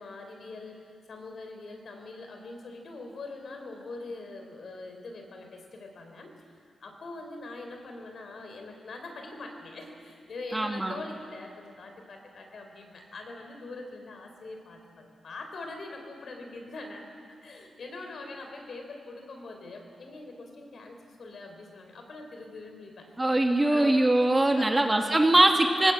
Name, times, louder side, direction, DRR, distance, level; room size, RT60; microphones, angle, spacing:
voice 1, 0.0-6.3 6.8-17.1 17.4-23.1 23.7-24.0 24.5-24.8, left 2 dB, 60° left, 3 dB, 4.0 m, -43 dB
voice 2, 10.5-11.0 23.2-25.9, right 1 dB, 20° right, 3 dB, 2.0 m, -22 dB
20.0 x 17.5 x 8.8 m, 2.2 s
cardioid pair, 85°, 0 cm